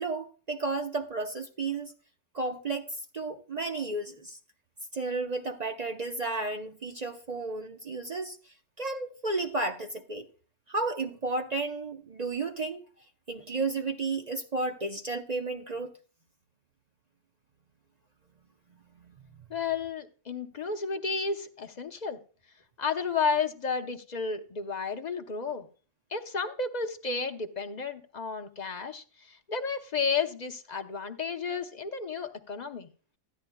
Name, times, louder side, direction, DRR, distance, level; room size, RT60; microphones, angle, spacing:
voice 1, 0.0-1.9 2.3-4.4 4.9-10.3 10.7-12.8 13.3-15.9 18.9-19.2, right 3 dB, 45° right, 0.5 m, -33 dB
voice 2, 19.5-22.2 22.8-25.7 26.1-32.9, left 5 dB, 45° left, 0.6 m, -32 dB
14.5 x 10.0 x 2.2 m
omnidirectional pair, 1.7 m